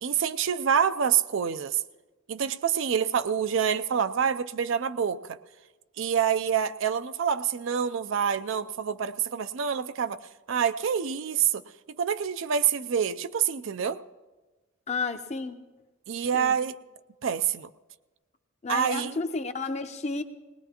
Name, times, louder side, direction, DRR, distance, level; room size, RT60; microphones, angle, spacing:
voice 1, 0.0-1.8 2.3-5.4 6.0-10.2 10.5-11.6 12.0-14.0 16.1-16.7 17.2-17.7 18.7-19.2, right 7 dB, 65° right, 12 dB, 0.4 m, -26 dB
voice 2, 14.9-15.6 16.3-16.6 18.6-20.2, left 4 dB, 35° left, 7 dB, 0.6 m, -31 dB
19.5 x 19.5 x 2.9 m, 1.2 s
head